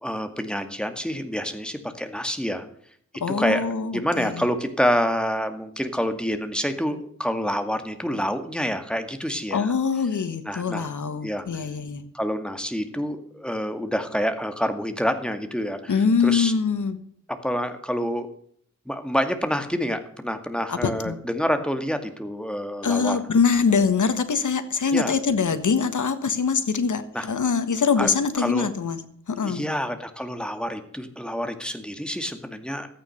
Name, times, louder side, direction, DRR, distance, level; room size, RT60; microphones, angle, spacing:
voice 1, 0.0-2.7 3.3-3.6 3.9-9.7 10.4-10.9 11.2-11.5 12.1-16.5 17.3-18.3 18.9-23.2 24.9-25.1 27.1-27.3 28.0-28.1 28.4-28.7 29.4-32.9, equal, 5° left, 7 dB, 2.1 m, -27 dB
voice 2, 3.2-4.5 9.5-12.1 15.9-17.0 20.7-21.2 22.8-29.0 29.3-29.6, left 5 dB, 85° left, 11 dB, 1.6 m, -23 dB
14.0 x 9.2 x 6.6 m, 0.63 s
wide cardioid pair, 75°, 30 cm